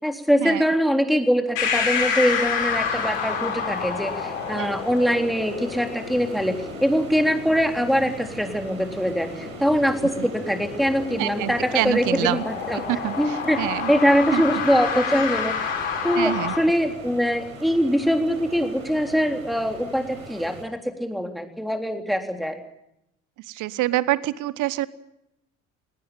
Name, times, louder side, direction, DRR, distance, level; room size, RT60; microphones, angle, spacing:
voice 1, 0.0-12.8 13.2-13.6 13.9-15.5 16.0-22.6, equal, ahead, 5 dB, 3.6 m, -23 dB
sound 1, 1.6-16.6, left 6 dB, 70° left, 6.5 m, -29 dB
sound 2, 2.6-20.7, right 2 dB, 85° right, 4.5 m, -40 dB
voice 2, 11.2-12.4 12.7-13.9 14.3-14.4 16.1-16.5 23.5-24.9, right 16 dB, 50° right, 19 dB, 1.0 m, -26 dB
19.0 x 18.5 x 9.1 m, 0.83 s
figure-of-eight pair, 60°, 40 cm